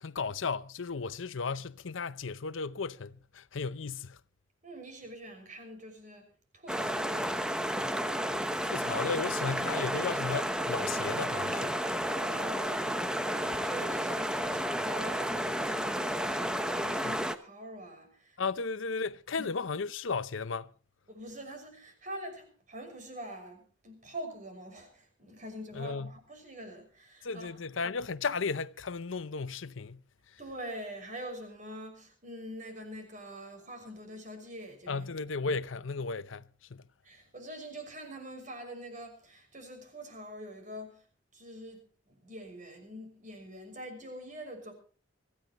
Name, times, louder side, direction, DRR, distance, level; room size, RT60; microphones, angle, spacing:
voice 1, 0.0-4.2 8.6-11.7 18.4-20.7 25.8-26.1 27.2-30.0 34.9-36.8, left 4 dB, 85° left, 0.7 m, -35 dB
voice 2, 4.6-6.3 6.5-7.8 12.0-18.4 19.4-19.5 21.1-27.6 30.4-35.1 37.0-41.1 41.3-44.7, right 1 dB, 40° right, 5.9 m, -45 dB
sound 1, 6.7-17.4, equal, 5° right, 0.9 m, -32 dB
24.5 x 15.0 x 3.0 m
head